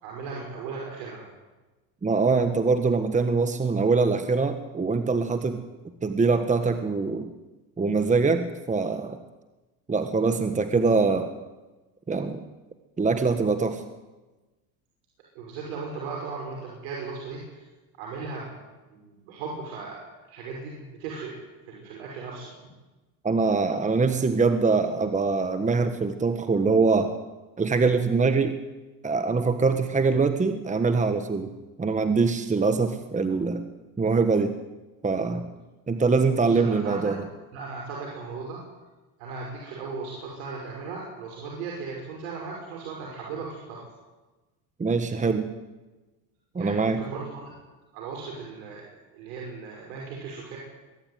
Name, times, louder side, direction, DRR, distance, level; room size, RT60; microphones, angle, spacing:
voice 1, 0.0-1.3 15.3-17.6 18.0-18.6 18.9-20.0 20.3-21.4 21.6-22.5 36.4-37.1 37.5-38.6 39.2-43.9 46.6-47.6 47.9-48.8 49.1-50.6, right 4 dB, 90° right, -3 dB, 6.0 m, -37 dB
voice 2, 2.0-5.6 6.0-7.3 7.8-9.2 9.9-11.3 12.1-12.4 13.0-13.8 23.2-27.1 27.6-28.6 29.0-31.5 31.8-33.6 34.0-34.5 35.0-35.5 35.9-37.2 44.8-45.5 46.5-47.0, right 4 dB, 20° right, 8 dB, 1.4 m, -23 dB
23.0 x 13.0 x 9.6 m, 1.2 s
supercardioid pair, 105°, 41 cm